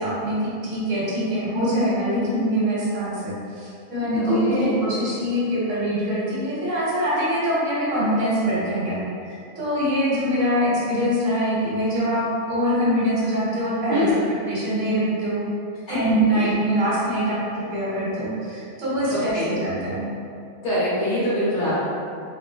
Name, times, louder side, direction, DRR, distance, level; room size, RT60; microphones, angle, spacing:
voice 1, 0.0-9.0 9.3-15.5 15.9-20.1, equal, 60° right, -8 dB, 1.1 m, -24 dB
voice 2, 4.1-4.8 13.9-14.3 15.9-16.5 19.0-19.6 20.6-21.8, left 1 dB, 85° left, -10 dB, 1.6 m, -24 dB
3.6 x 2.5 x 2.2 m, 2.5 s
omnidirectional pair, 1.6 m